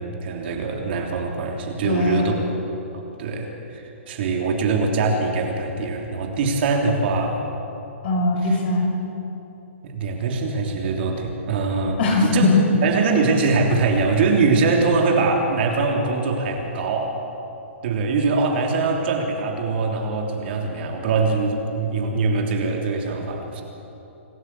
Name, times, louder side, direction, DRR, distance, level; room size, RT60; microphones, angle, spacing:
voice 1, 0.0-2.4 2.9-7.4 8.4-8.6 9.8-17.2 17.8-23.6, right 3 dB, 55° right, 2 dB, 3.3 m, -23 dB
voice 2, 1.8-2.3 8.0-9.0 12.0-12.6, left 3 dB, 55° left, 1 dB, 6.0 m, -20 dB
25.5 x 13.0 x 8.5 m, 2.9 s
hypercardioid pair, 125°, 7 cm